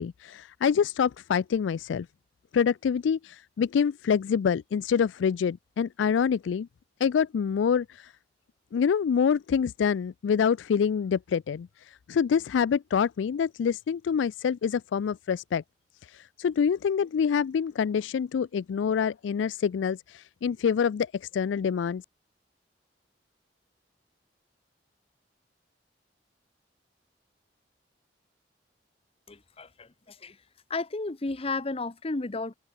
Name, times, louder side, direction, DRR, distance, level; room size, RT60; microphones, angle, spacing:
voice 1, 0.0-2.1 2.5-6.7 7.0-8.1 8.7-15.6 16.0-22.0, left 7 dB, 85° left, 0.3 m, -26 dB
voice 2, 29.3-30.4 30.7-32.5, left 3 dB, 30° left, 0.8 m, -33 dB
head